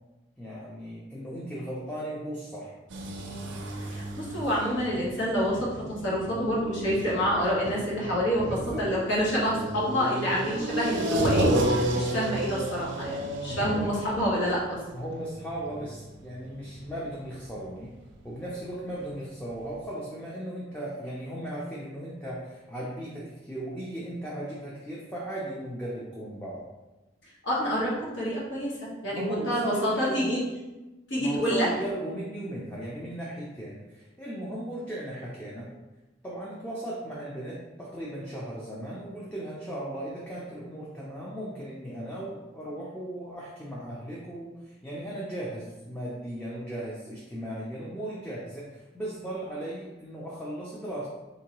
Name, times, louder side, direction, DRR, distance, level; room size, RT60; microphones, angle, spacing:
voice 1, 0.4-2.7 8.5-8.9 13.5-13.9 14.9-17.9 18.2-26.6 29.1-30.4 31.2-35.7 36.2-51.1, right 1 dB, 10° left, -7 dB, 0.5 m, -37 dB
sound 1, 2.9-18.5 18.8-18.9 19.5-19.6 19.8-19.9, right 1 dB, 90° right, 0.5 m, -32 dB
voice 2, 3.8-11.5 11.9-14.8 27.4-30.4 31.1-31.7, equal, 85° left, -5 dB, 1.2 m, -28 dB
3.7 x 2.7 x 2.9 m, 1.1 s
head